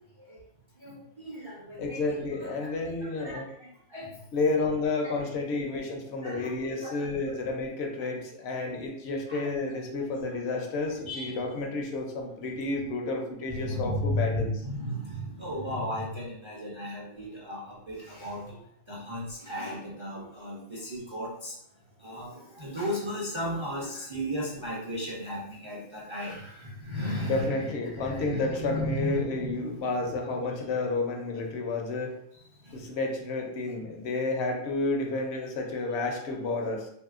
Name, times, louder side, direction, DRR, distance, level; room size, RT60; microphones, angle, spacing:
voice 1, 0.8-2.7 3.0-4.2 5.5-5.7 6.2-6.5 6.8-7.4 9.3-9.8 10.3-10.4 11.1-11.4 11.7-11.8 13.5-18.5 18.9-21.5 22.0-29.9 32.7-32.9, equal, 40° right, -5 dB, 0.4 m, -35 dB
voice 2, 1.8-3.5 4.3-14.5 27.2-32.2 32.7-36.9, left 3 dB, 70° left, 2 dB, 0.8 m, -31 dB
3.0 x 2.7 x 2.4 m, 0.71 s
omnidirectional pair, 1.2 m